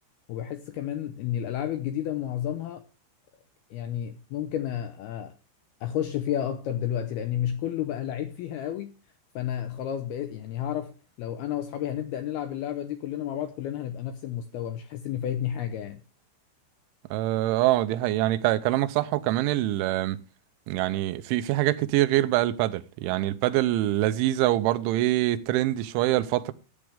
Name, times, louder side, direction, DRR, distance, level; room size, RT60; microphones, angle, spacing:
voice 1, 0.3-2.8 3.7-5.4 5.8-8.9 9.4-16.0, left 10 dB, 80° left, 2.3 m, -31 dB
voice 2, 17.1-20.2 20.7-26.5, right 15 dB, 85° right, 3.1 m, -24 dB
14.0 x 9.6 x 3.4 m
omnidirectional pair, 5.4 m